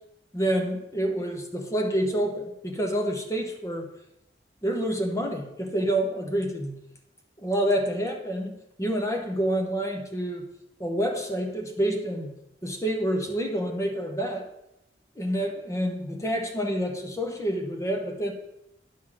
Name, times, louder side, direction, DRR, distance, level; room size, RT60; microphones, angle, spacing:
voice 1, 0.3-3.9 4.6-6.8 7.4-8.5 8.8-10.4 10.8-12.3 12.6-14.5 15.2-18.3, right 1 dB, 15° left, 3 dB, 0.9 m, -28 dB
9.2 x 6.2 x 3.8 m, 0.85 s
head